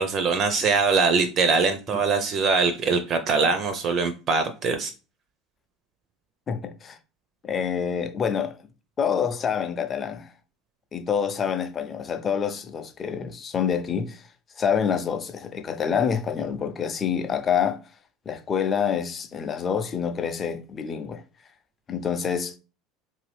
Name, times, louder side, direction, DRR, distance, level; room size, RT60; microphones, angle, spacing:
voice 1, 0.0-4.9, right 4 dB, 45° right, 0.5 m, -22 dB
voice 2, 6.5-7.0 7.4-8.5 9.0-10.3 10.9-14.2 14.6-17.8 18.3-21.2 21.9-22.5, left 7 dB, 30° left, 0.5 m, -27 dB
2.7 x 2.6 x 3.3 m
supercardioid pair, 105°, 0 cm